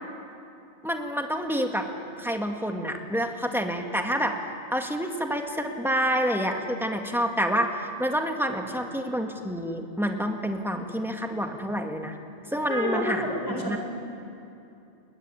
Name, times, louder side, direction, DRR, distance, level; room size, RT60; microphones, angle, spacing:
voice 1, 0.8-1.9 2.2-4.4 4.7-12.1 12.5-13.8, equal, ahead, 3 dB, 1.8 m, -28 dB
voice 2, 12.7-13.8, left 1 dB, 65° left, 0 dB, 4.6 m, -29 dB
21.5 x 20.0 x 9.8 m, 2.7 s
omnidirectional pair, 1.1 m